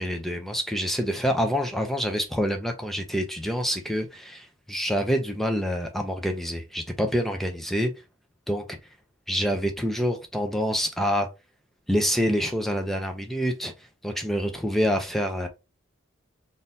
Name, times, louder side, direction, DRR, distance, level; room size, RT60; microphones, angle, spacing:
voice 1, 0.0-7.9 8.5-8.8 9.3-11.3 11.9-13.7 14.0-15.5, equal, ahead, 0.5 m, -26 dB
3.7 x 2.6 x 2.7 m
head